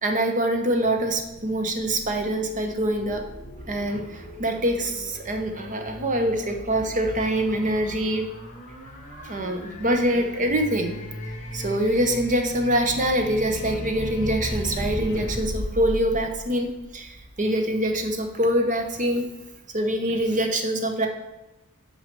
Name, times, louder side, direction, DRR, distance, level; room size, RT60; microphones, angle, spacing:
voice 1, 0.0-3.3 3.7-8.3 9.1-11.0 11.5-19.3 19.7-21.1, right 1 dB, 35° right, 5 dB, 0.8 m, -24 dB
sound 1, 0.8-17.0, equal, 35° left, 1.6 m, -37 dB
6.1 x 5.6 x 5.2 m, 1.0 s
head